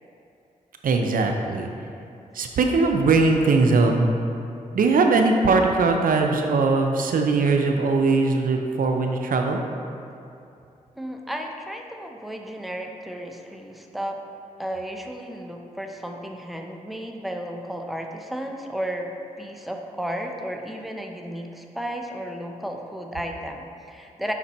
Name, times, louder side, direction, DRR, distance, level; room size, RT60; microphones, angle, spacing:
voice 1, 0.8-1.7 2.3-4.1 4.7-9.6, right 3 dB, 75° right, 3 dB, 0.5 m, -20 dB
voice 2, 11.0-14.2 14.6-19.1 19.4-24.3, equal, ahead, 2 dB, 0.7 m, -33 dB
5.8 x 4.2 x 4.2 m, 2.7 s
cardioid pair, 50°, 15 cm